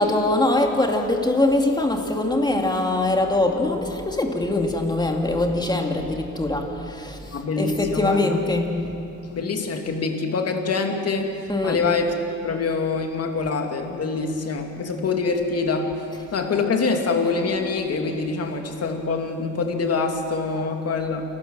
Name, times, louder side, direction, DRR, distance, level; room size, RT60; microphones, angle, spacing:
voice 1, 0.0-8.9 11.5-11.9 16.1-16.2 20.5-20.7, left 2 dB, 15° left, 2 dB, 2.6 m, -23 dB
voice 2, 7.3-8.4 9.3-11.3 11.6-12.1 12.4-15.9 16.3-21.2, left 4 dB, 55° left, 4 dB, 2.6 m, -25 dB
29.0 x 12.5 x 7.8 m, 2.7 s
cardioid pair, 90°, 30 cm